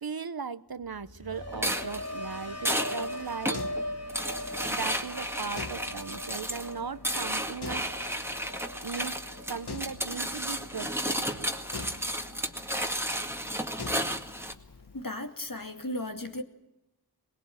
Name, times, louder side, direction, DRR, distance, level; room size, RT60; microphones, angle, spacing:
voice 1, 0.0-3.6 4.7-8.1 8.8-9.2 9.5-11.4, right 6 dB, 70° right, 14 dB, 0.9 m, -38 dB
sound 1, 0.8-10.9 11.3-11.7, left 1 dB, 40° left, 2.4 m, -41 dB
sound 2, 1.5-14.5, equal, 5° right, 2.0 m, -33 dB
sound 3, 2.4-15.0, left 4 dB, 90° left, 1.3 m, -46 dB
voice 2, 14.9-16.4, left 1 dB, 60° left, 5 dB, 2.7 m, -35 dB
23.0 x 20.0 x 8.8 m, 0.90 s
wide cardioid pair, 50°, 38 cm